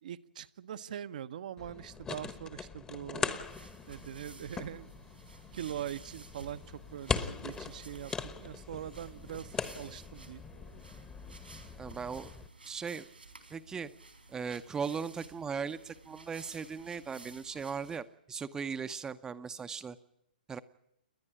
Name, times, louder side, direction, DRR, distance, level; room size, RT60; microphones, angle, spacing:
voice 1, 0.0-3.4 3.9-4.9 5.5-8.1 8.4-10.4, right 10 dB, 55° right, 14 dB, 0.9 m, -42 dB
sound 1, 1.6-12.5, left 5 dB, 15° left, 1.1 m, -41 dB
sound 2, 3.3-18.0, right 3 dB, 90° right, 3.8 m, -54 dB
voice 2, 11.8-12.3 12.6-13.1 13.5-13.9 14.3-20.0 20.5-20.6, right 6 dB, 10° right, 12 dB, 0.8 m, -38 dB
29.5 x 11.0 x 10.0 m, 0.76 s
figure-of-eight pair, 125°, 5 cm